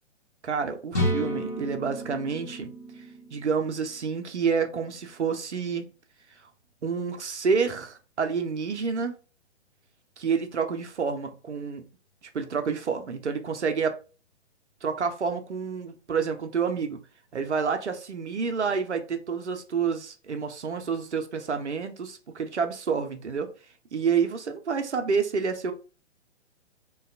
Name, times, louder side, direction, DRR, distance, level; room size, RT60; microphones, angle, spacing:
voice 1, 0.4-2.7 3.3-5.9 6.8-9.1 10.2-11.9 12.2-14.0 14.8-17.0 17.3-23.5 23.9-25.7, right 5 dB, 75° right, 0.6 m, -28 dB
sound 1, 0.9-4.7, equal, 15° left, 0.4 m, -32 dB
2.8 x 2.3 x 2.5 m
figure-of-eight pair, 125°, 35 cm